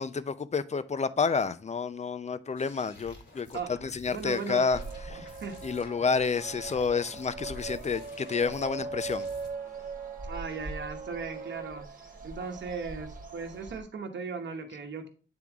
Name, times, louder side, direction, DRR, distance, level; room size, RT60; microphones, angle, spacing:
voice 1, 0.0-4.8 5.1-5.3 5.6-9.3, left 5 dB, 35° left, 0.5 m, -29 dB
sound 1, 2.6-9.5, left 2 dB, 80° left, 2.0 m, -51 dB
voice 2, 4.1-4.6 5.4-5.6 10.2-11.9 12.2-15.1, right 5 dB, 75° right, 1.1 m, -37 dB
sound 2, 4.7-13.8, right 4 dB, 45° right, 1.3 m, -40 dB
8.7 x 3.6 x 3.5 m
cardioid pair, 60°, 19 cm